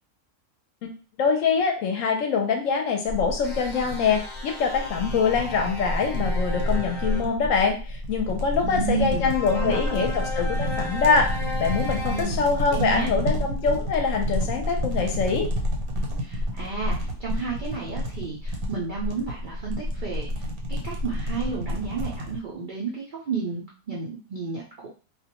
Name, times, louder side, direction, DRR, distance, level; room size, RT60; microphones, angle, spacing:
voice 1, 1.2-11.3 11.6-15.5, left 5 dB, 70° left, 3 dB, 0.9 m, -24 dB
sound 1, 3.1-22.4, left 1 dB, 85° right, 1.1 m, -29 dB
sound 2, 3.4-7.3 9.2-12.2, left 2 dB, 45° left, 0.6 m, -35 dB
voice 2, 8.6-10.1 12.0-12.4 12.7-13.1 16.2-24.9, right 4 dB, 65° right, -4 dB, 0.4 m, -32 dB
2.4 x 2.1 x 2.8 m, 0.36 s
omnidirectional pair, 1.5 m